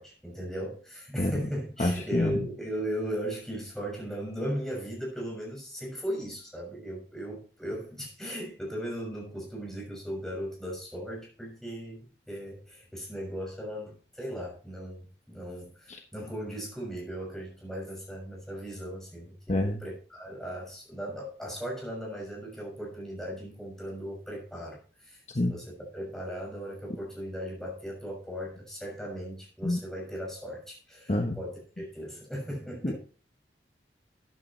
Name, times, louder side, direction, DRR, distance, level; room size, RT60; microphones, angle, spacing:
voice 1, 0.0-33.0, equal, 5° left, -3 dB, 6.2 m, -37 dB
voice 2, 1.8-2.4 15.9-16.0 19.5-19.8 25.3-25.5 29.6-29.8 31.1-31.4 32.8-33.0, left 1 dB, 40° left, 3 dB, 1.1 m, -27 dB
14.0 x 9.7 x 3.2 m, 0.40 s
head